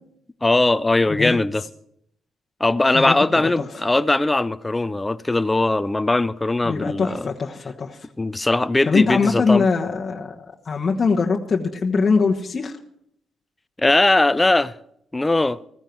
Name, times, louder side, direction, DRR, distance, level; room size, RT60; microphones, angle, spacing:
voice 1, 0.4-1.6 2.6-7.3 8.2-9.7 13.8-14.7 15.1-15.6, left 2 dB, 15° left, 0.5 m, -20 dB
voice 2, 1.1-1.4 2.9-3.6 6.6-8.1 8.9-12.8, left 4 dB, 35° left, 1.2 m, -22 dB
15.5 x 14.5 x 4.6 m
cardioid pair, 115°, 0 cm